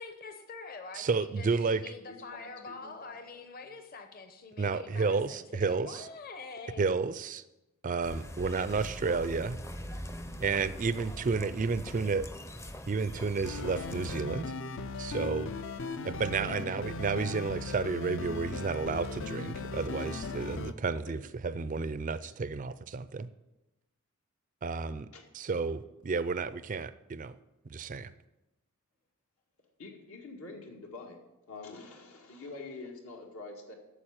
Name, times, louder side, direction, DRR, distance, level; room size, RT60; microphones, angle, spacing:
voice 1, 0.0-6.9, left 4 dB, 40° left, 6 dB, 1.0 m, -45 dB
voice 2, 0.9-1.8 4.6-6.1 6.8-7.4 7.8-9.6 10.4-12.3 12.9-14.5 15.0-15.5 16.0-23.0 24.6-25.1 25.3-27.4 27.7-28.1, right 4 dB, 35° right, 15 dB, 0.4 m, -31 dB
voice 3, 2.1-3.4 21.1-21.2 21.5-21.6 25.1-25.2 29.8-31.2 31.5-33.7, left 3 dB, 75° left, 2 dB, 2.1 m, -46 dB
sound 1, 8.0-14.2, equal, 15° left, 0.5 m, -42 dB
sound 2, 13.4-20.7, left 3 dB, 60° left, 0.6 m, -38 dB
8.9 x 7.0 x 8.7 m, 0.97 s
head